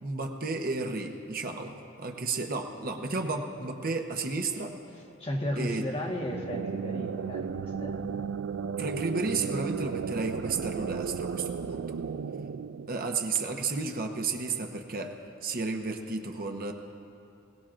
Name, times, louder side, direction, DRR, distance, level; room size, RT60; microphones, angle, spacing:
voice 1, 0.0-4.7 5.6-5.8 8.8-12.0 12.9-15.2 15.4-16.7, right 3 dB, 45° right, 3 dB, 0.9 m, -32 dB
voice 2, 5.2-8.2 11.8-11.9, left 1 dB, 30° left, -1 dB, 1.5 m, -35 dB
sound 1, 6.0-13.6, right 6 dB, 65° right, 0.3 m, -34 dB
21.0 x 19.0 x 2.6 m, 2.6 s
head